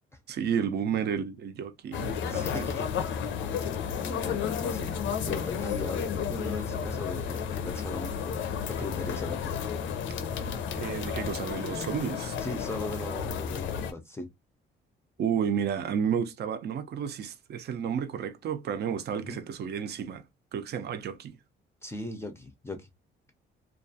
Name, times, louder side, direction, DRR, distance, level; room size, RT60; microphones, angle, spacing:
voice 1, 0.3-2.6 10.7-12.4 15.2-20.2 20.5-21.3, right 7 dB, 55° right, 0.5 m, -31 dB
sound 1, 1.9-13.9, left 7 dB, 75° left, 0.5 m, -32 dB
voice 2, 2.3-3.0 3.5-4.9 5.2-8.3 8.7-9.6 12.4-14.3 19.2-19.4 21.8-22.9, left 2 dB, 15° left, 0.5 m, -39 dB
2.3 x 2.3 x 2.6 m
cardioid pair, 90°, 20 cm